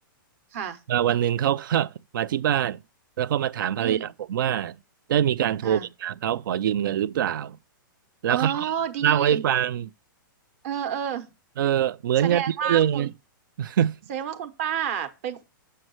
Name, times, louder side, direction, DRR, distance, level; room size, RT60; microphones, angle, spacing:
voice 1, 0.9-2.8 3.2-4.7 5.1-7.6 8.2-8.7 9.0-9.9 11.6-13.1 13.6-14.0, right 10 dB, 70° right, 0.4 m, -24 dB
voice 2, 3.8-4.1 5.6-5.9 8.3-9.4 10.6-11.3 12.2-13.1 14.1-15.4, right 9 dB, 45° right, 0.9 m, -30 dB
7.6 x 5.4 x 3.1 m
hypercardioid pair, 150°, 11 cm